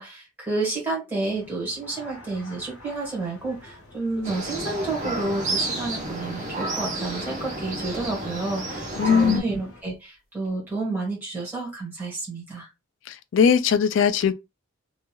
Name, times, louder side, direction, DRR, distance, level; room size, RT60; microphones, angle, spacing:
voice 1, 0.0-12.7, right 3 dB, 10° right, 1.4 m, -30 dB
sound 1, 1.2-9.8, left 2 dB, 85° left, 1.1 m, -47 dB
sound 2, 2.7-2.9 3.4-3.6 4.1-5.2 5.9-6.0 7.0-7.1 9.2-9.4 9.8-9.9 10.4-10.5, right 1 dB, 70° right, 1.3 m, -43 dB
sound 3, 4.2-9.4, right 2 dB, 35° right, 0.8 m, -31 dB
voice 2, 9.0-9.4 13.1-14.3, left 6 dB, 60° left, 0.3 m, -20 dB
3.0 x 2.6 x 2.3 m
head